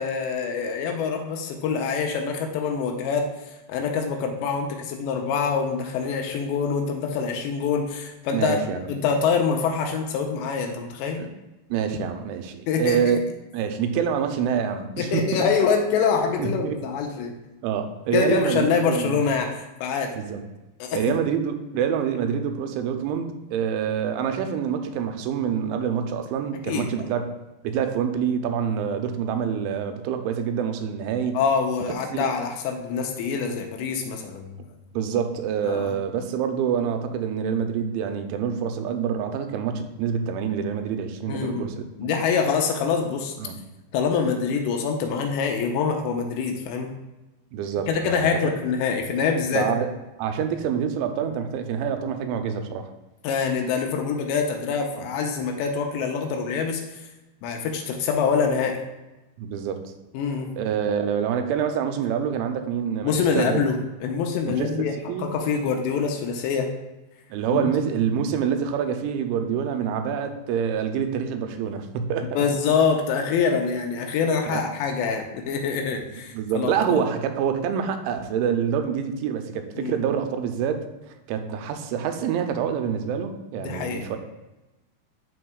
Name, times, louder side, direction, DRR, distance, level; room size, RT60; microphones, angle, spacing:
voice 1, 0.0-11.2 12.7-13.0 15.0-17.3 18.1-19.5 19.8-20.1 20.8-21.0 26.7-27.1 31.3-34.6 35.7-36.0 41.3-41.7 42.0-43.3 43.9-46.9 47.9-49.7 53.2-57.1 57.4-58.8 60.1-60.5 63.0-64.9 65.2-66.7 67.5-67.7 72.4-77.0 79.8-80.0 83.6-84.1, left 6 dB, 85° left, 3 dB, 2.8 m, -25 dB
voice 2, 8.3-8.8 11.2-11.3 11.7-13.2 13.5-15.4 16.4-16.8 17.6-19.2 20.2-20.4 20.9-27.2 27.6-31.4 31.8-32.3 34.9-42.1 43.4-43.6 47.5-48.3 49.5-49.9 50.2-52.9 55.0-55.1 59.4-59.8 60.6-63.6 64.5-65.3 67.3-72.4 74.5-74.6 76.3-80.9 81.3-84.2, right 7 dB, 90° right, 7 dB, 3.0 m, -26 dB
12.0 x 4.3 x 2.3 m, 1.0 s
omnidirectional pair, 5.3 m